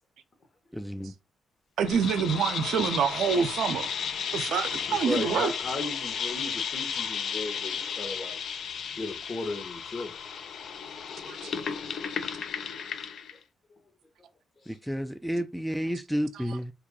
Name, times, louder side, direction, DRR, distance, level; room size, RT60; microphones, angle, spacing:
voice 1, 0.7-1.1 14.7-16.7, equal, ahead, 0.3 m, -31 dB
voice 2, 1.8-3.9 4.3-5.5 11.3-11.5, right 7 dB, 75° right, 0.5 m, -26 dB
sound 1, 1.9-13.4, left 7 dB, 70° left, 0.4 m, -34 dB
voice 3, 4.9-8.4 9.0-10.1, left 2 dB, 45° left, 1.3 m, -35 dB
2.8 x 2.6 x 3.8 m
supercardioid pair, 60°, 0 cm